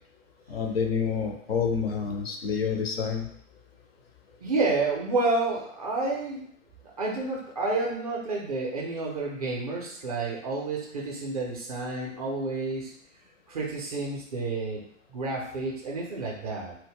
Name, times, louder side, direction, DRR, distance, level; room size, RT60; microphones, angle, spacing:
voice 1, 0.5-3.3, left 6 dB, 50° left, 3 dB, 0.4 m, -28 dB
voice 2, 4.4-6.5 7.0-12.9 13.5-14.8 15.1-16.7, right 3 dB, 30° right, -2 dB, 0.4 m, -30 dB
2.1 x 2.0 x 3.4 m, 0.65 s
figure-of-eight pair, 115°, 40 cm